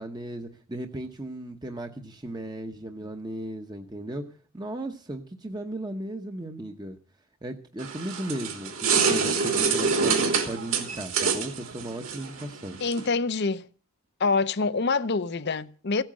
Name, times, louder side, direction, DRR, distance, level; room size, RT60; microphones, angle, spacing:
voice 1, 0.0-4.2 4.5-7.0 7.4-12.8, right 1 dB, 20° right, 0.9 m, -36 dB
sound 1, 7.8-13.1, right 5 dB, 65° right, 2.9 m, -26 dB
voice 2, 12.8-13.7 14.2-16.0, left 4 dB, 50° left, 0.7 m, -26 dB
16.0 x 8.9 x 7.5 m
head